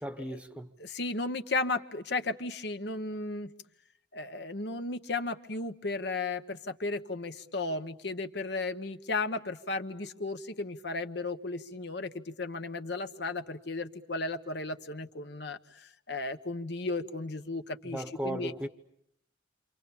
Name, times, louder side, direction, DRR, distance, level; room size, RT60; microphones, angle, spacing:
voice 1, 0.0-0.7 17.8-18.7, right 1 dB, 5° right, 1.0 m, -36 dB
voice 2, 0.8-3.5 4.1-18.5, left 3 dB, 60° left, 1.1 m, -35 dB
28.5 x 26.0 x 7.1 m
head